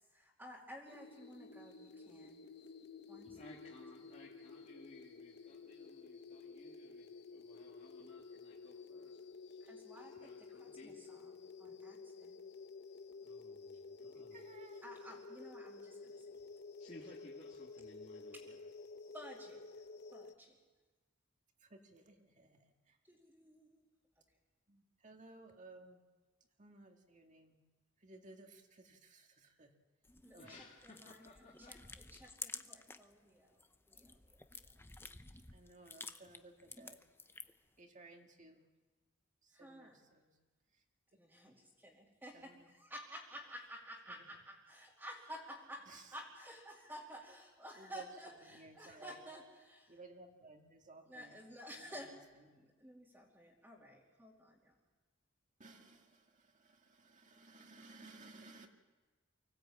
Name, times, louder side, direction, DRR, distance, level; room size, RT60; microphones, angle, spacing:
voice 1, 0.1-2.4 3.1-3.5 9.6-12.4 14.8-16.4 18.3-18.4 19.1-19.6 20.1-20.6 23.1-23.8 30.2-34.6 39.5-40.0 41.2-50.0 51.1-52.2 52.6-54.7, equal, 10° right, -4 dB, 2.6 m, -53 dB
sound 1, 0.9-20.3, left 4 dB, 55° left, 0.8 m, -52 dB
voice 2, 3.2-11.0 13.2-14.4 16.8-18.6 30.4-31.8, left 1 dB, 35° left, -4 dB, 2.2 m, -59 dB
voice 3, 14.3-14.8 21.6-23.0 24.7-26.0 26.6-27.6 28.0-29.7 30.3-30.6 35.5-37.0 37.8-38.7 39.4-40.3 42.3-42.7 44.1-44.2 45.9-46.1 47.8-49.2 49.9-51.4 51.7-52.2 52.5-52.6 55.6-58.7, right 2 dB, 40° right, 3 dB, 2.1 m, -58 dB
sound 2, 30.0-33.1 33.5-37.7, left 3 dB, 10° left, 0.7 m, -52 dB
24.0 x 16.5 x 8.6 m, 1.3 s
head